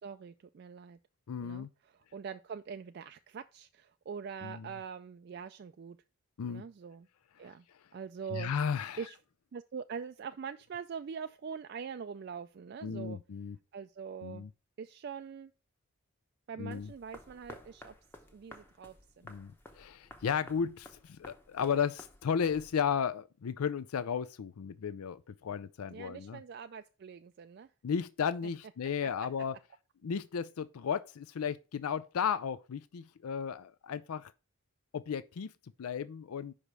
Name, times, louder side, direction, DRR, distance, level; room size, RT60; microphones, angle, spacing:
voice 1, 0.0-1.0 1.4-6.0 6.5-7.1 7.4-7.6 7.9-8.5 9.0-9.2 9.5-13.2 13.7-14.5 14.8-15.5 16.5-17.9 18.3-19.3 25.9-27.7 29.0-29.1, right 6 dB, 50° right, 0.3 m, -43 dB
voice 2, 1.3-1.7 4.4-4.7 6.4-6.6 7.4-7.5 8.3-9.0 12.8-13.6 14.2-14.5 16.6-16.9 19.2-26.4 27.8-29.6 30.0-34.3 34.9-35.5 35.8-36.5, left 7 dB, 85° left, 0.4 m, -34 dB
sound 1, 16.7-23.0, left 1 dB, 10° left, 0.8 m, -54 dB
5.5 x 5.0 x 6.0 m
head